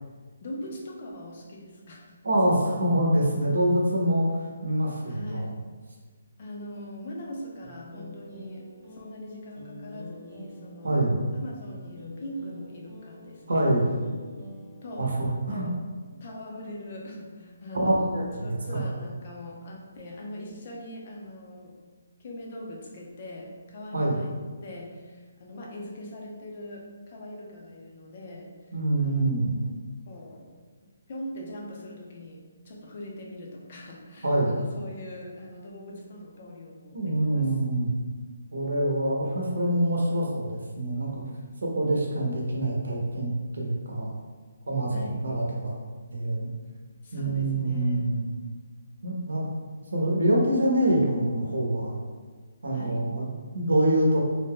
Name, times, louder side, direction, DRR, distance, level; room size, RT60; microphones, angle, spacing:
voice 1, 0.4-2.2 5.1-5.6 6.4-13.7 14.8-15.1 15.5-15.7 16.2-21.8 22.2-28.7 29.0-29.7 30.1-30.5 31.1-37.5 44.9-45.2 47.0-48.1 52.7-53.1, left 1 dB, 35° left, -1 dB, 0.5 m, -42 dB
voice 2, 2.2-5.5 10.8-11.2 13.5-13.9 15.0-15.7 17.7-18.8 23.9-24.2 28.7-29.5 34.2-34.6 36.9-37.9 38.5-41.2 41.6-44.2 44.7-45.7 46.1-46.5 47.1-48.4 49.0-49.5 49.9-52.0 52.6-54.2, right 1 dB, 85° right, -2 dB, 0.8 m, -25 dB
sound 1, 7.6-15.7, left 1 dB, 25° right, 1.0 m, -45 dB
2.5 x 2.2 x 3.5 m, 1.4 s
hypercardioid pair, 170°, 0 cm